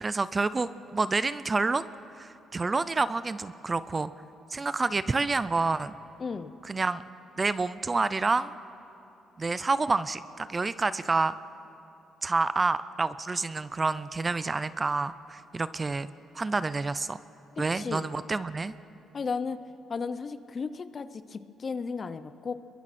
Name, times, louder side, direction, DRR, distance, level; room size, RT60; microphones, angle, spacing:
voice 1, 0.0-1.9 2.2-4.1 4.5-5.9 6.7-7.0 7.4-8.5 9.4-11.4 12.2-16.1 16.3-17.2 17.6-18.7, right 3 dB, 25° right, 15 dB, 0.6 m, -28 dB
voice 2, 6.2-6.6 17.6-18.1 19.1-19.6 19.9-22.5, left 5 dB, 40° left, 12 dB, 0.8 m, -34 dB
28.0 x 22.5 x 4.3 m, 2.8 s
cardioid pair, 90°, 0 cm